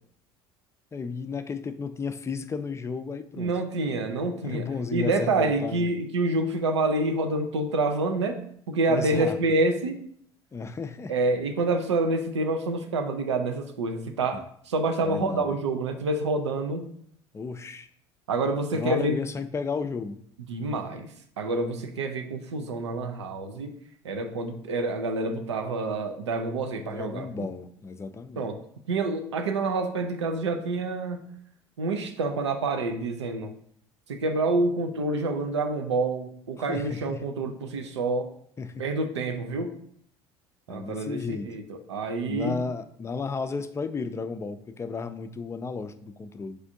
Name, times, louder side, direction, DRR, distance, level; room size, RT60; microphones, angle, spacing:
voice 1, 0.9-3.5 4.4-5.9 8.9-9.4 10.5-11.2 14.3-14.4 15.0-15.5 17.3-17.9 18.7-20.2 26.7-28.5 36.6-37.2 38.6-38.9 40.7-41.5 42.3-46.6, left 4 dB, 20° left, 10 dB, 0.4 m, -33 dB
voice 2, 3.4-4.6 4.9-8.4 8.7-10.0 11.1-16.9 18.3-19.2 20.5-21.1 21.4-23.7 24.0-27.5 28.4-28.6 28.9-31.3 31.8-33.5 34.1-38.3 38.8-39.8 40.7-42.6, right 2 dB, 90° right, 6 dB, 0.4 m, -27 dB
6.1 x 2.4 x 2.6 m, 0.65 s
hypercardioid pair, 65°, 14 cm